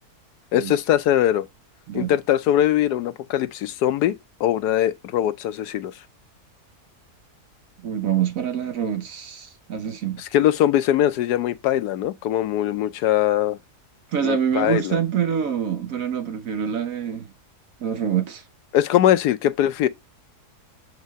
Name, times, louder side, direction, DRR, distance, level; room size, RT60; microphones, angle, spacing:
voice 1, 0.5-1.5 1.9-4.1 4.4-6.0 10.2-13.6 14.2-15.0 18.7-19.9, left 11 dB, 90° left, 1.2 m, -21 dB
voice 2, 7.8-10.3 14.1-17.3 17.8-18.5, right 8 dB, 65° right, 1.1 m, -26 dB
7.5 x 4.6 x 4.0 m
omnidirectional pair, 1.7 m